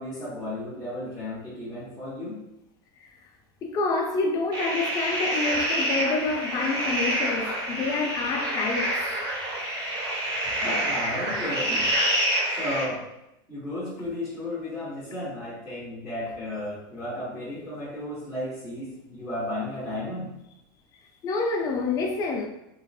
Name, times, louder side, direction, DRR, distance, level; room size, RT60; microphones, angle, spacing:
voice 1, 0.0-2.4 10.6-11.9 12.6-13.1 13.5-20.3, left 1 dB, ahead, 0.8 m, -33 dB
voice 2, 3.6-9.0 10.4-10.6 21.2-22.5, left 3 dB, 30° left, 0.5 m, -28 dB
sound 1, 4.5-12.8, right 1 dB, 30° right, 1.0 m, -27 dB
3.0 x 2.8 x 2.3 m
supercardioid pair, 150°, 12 cm